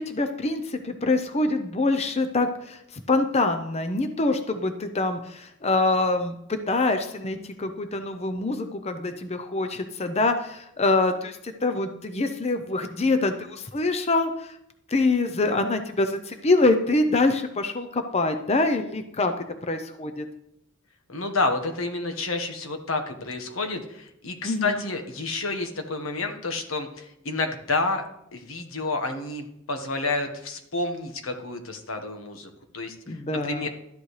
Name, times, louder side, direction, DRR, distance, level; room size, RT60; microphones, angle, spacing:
voice 1, 0.0-14.6 14.9-19.3 19.7-20.3 24.4-24.8 33.1-33.7, left 2 dB, 30° left, 7 dB, 0.6 m, -25 dB
voice 2, 21.1-28.0 28.3-33.7, left 3 dB, 80° left, 5 dB, 1.4 m, -29 dB
13.0 x 10.5 x 3.3 m, 0.78 s
head